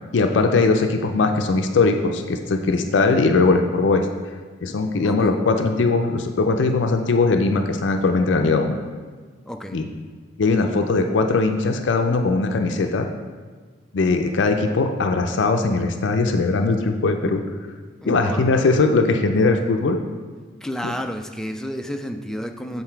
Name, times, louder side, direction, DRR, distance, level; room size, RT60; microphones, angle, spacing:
voice 1, 0.1-4.1 4.6-8.8 9.7-9.9 10.4-13.1 13.9-17.4 18.1-20.0 20.8-20.9, left 3 dB, 65° left, 5 dB, 0.4 m, -20 dB
voice 2, 5.0-5.4 9.5-9.8 18.0-18.8 20.6-22.8, equal, 5° left, 5 dB, 0.3 m, -31 dB
7.7 x 4.0 x 4.5 m, 1.5 s
head